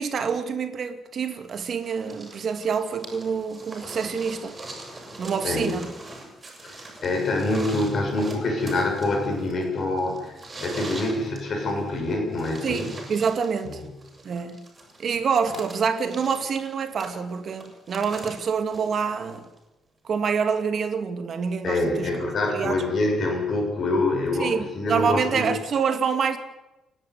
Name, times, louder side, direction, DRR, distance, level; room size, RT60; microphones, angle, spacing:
voice 1, 0.0-4.5 5.2-5.9 12.6-13.8 14.2-14.6 15.0-19.4 20.0-22.1 22.5-22.8 24.4-26.4, right 6 dB, 45° right, 2.6 m, -26 dB
sound 1, 1.5-19.6 20.6-20.7, right 2 dB, 20° right, 6.5 m, -42 dB
voice 2, 5.4-5.8 6.6-12.9 13.6-13.7 21.6-25.5, left 2 dB, 45° left, 6.6 m, -26 dB
29.5 x 11.0 x 9.6 m
cardioid pair, 140°, 0 cm